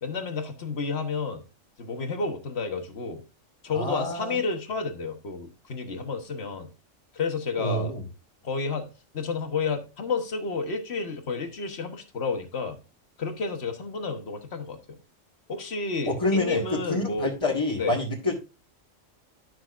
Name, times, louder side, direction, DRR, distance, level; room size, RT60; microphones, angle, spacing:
voice 1, 0.0-1.4 1.8-3.2 3.6-6.7 7.1-7.9 8.4-8.9 9.1-12.8 13.2-15.0 15.5-17.3 17.8-18.0, left 4 dB, 55° left, 1.5 m, -31 dB
voice 2, 3.7-4.5 7.6-8.0 16.1-18.3, left 1 dB, 25° left, 1.8 m, -27 dB
12.0 x 6.1 x 2.5 m
omnidirectional pair, 1.3 m